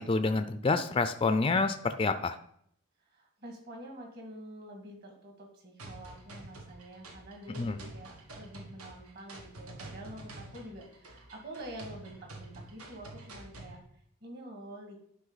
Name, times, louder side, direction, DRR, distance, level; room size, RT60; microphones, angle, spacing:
voice 1, 0.0-2.3 7.6-7.7, left 3 dB, 25° left, 10 dB, 0.4 m, -28 dB
voice 2, 3.1-15.0, right 1 dB, 45° right, 2 dB, 2.2 m, -47 dB
sound 1, 5.8-13.8, right 2 dB, 80° right, 1.4 m, -48 dB
11.0 x 5.3 x 4.0 m, 0.67 s
head